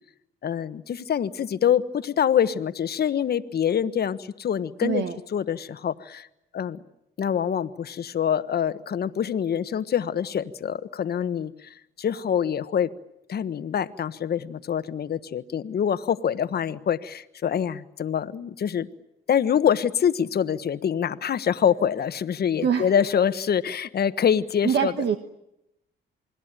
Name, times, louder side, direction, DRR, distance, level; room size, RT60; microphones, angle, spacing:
voice 1, 0.4-5.0 5.3-6.3 6.5-6.8 7.2-12.9 13.3-18.9 19.3-24.9, left 8 dB, 55° left, 13 dB, 1.3 m, -25 dB
voice 2, 4.8-5.1 22.6-22.9 24.6-25.2, right 8 dB, 60° right, 7 dB, 1.6 m, -24 dB
28.5 x 21.0 x 9.1 m, 0.85 s
cardioid pair, 90°, 20 cm